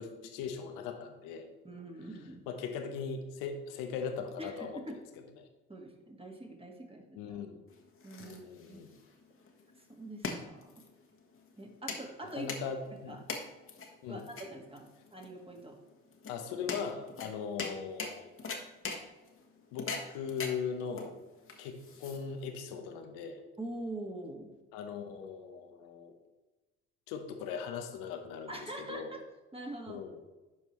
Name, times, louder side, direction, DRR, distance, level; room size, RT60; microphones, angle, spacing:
voice 1, 0.0-1.5 2.5-4.8 5.4-5.5 7.1-7.6 8.2-8.9 12.4-13.2 14.0-14.3 16.3-18.3 19.7-21.1 21.6-23.4 24.7-26.1 27.1-28.5 28.8-29.1 29.9-30.2, left 6 dB, 80° left, 6 dB, 0.9 m, -39 dB
voice 2, 1.6-2.4 4.4-5.0 5.7-7.4 8.0-8.8 9.8-10.7 11.6-12.5 13.1-13.2 14.1-15.8 23.6-24.5 28.5-29.2 29.5-30.0, right 1 dB, 15° right, 2 dB, 1.7 m, -44 dB
sound 1, 7.7-22.6, left 4 dB, 40° left, 1.3 m, -43 dB
12.0 x 4.6 x 3.1 m, 1.1 s
hypercardioid pair, 55°, 32 cm